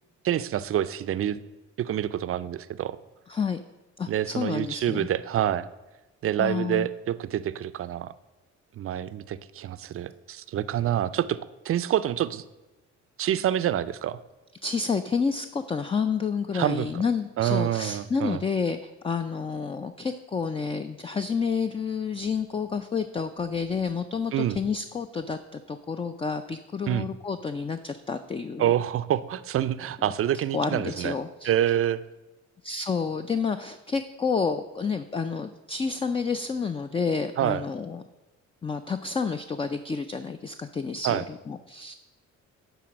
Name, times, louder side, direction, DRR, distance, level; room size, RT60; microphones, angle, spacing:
voice 1, 0.2-1.4 1.8-3.0 4.1-5.7 6.2-8.1 8.8-11.4 11.6-12.4 13.2-14.2 16.5-16.9 17.4-18.4 24.3-24.6 26.9-27.1 28.6-31.2 31.4-32.0 37.4-37.6 41.0-41.2, right 11 dB, 50° right, 15 dB, 0.4 m, -27 dB
voice 2, 3.3-3.6 4.0-5.1 6.4-6.9 14.6-28.7 30.5-31.5 32.6-38.0 38.6-41.9, left 5 dB, 20° left, 9 dB, 0.4 m, -29 dB
10.0 x 4.0 x 6.2 m, 1.1 s
cardioid pair, 90°, 30 cm